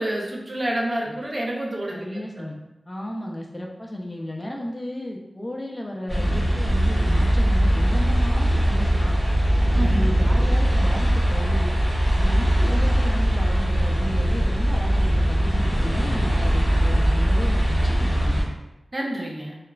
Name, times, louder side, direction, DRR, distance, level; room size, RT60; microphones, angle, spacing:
voice 1, 0.0-2.5 9.7-10.0 18.9-19.6, right 1 dB, 40° right, -2 dB, 0.5 m, -28 dB
voice 2, 1.9-2.6 2.9-9.1 9.7-11.8 12.1-18.5, left 1 dB, 25° left, -1 dB, 0.4 m, -33 dB
sound 1, 6.1-18.4, equal, 10° right, 1.4 m, -20 dB
2.9 x 2.4 x 2.2 m, 0.95 s
cardioid pair, 55°, 0 cm